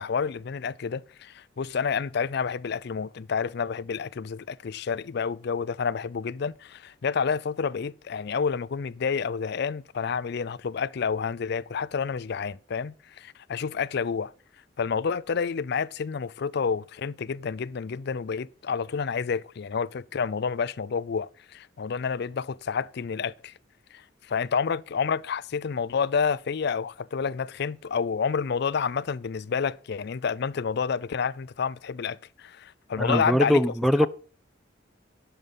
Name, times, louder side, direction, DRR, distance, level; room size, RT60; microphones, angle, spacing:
voice 1, 0.0-14.3 14.8-23.5 23.9-33.6 34.0-34.1, left 6 dB, 60° left, 0.4 m, -29 dB
voice 2, 33.0-34.1, left 1 dB, ahead, 0.4 m, -22 dB
11.0 x 7.0 x 5.5 m
head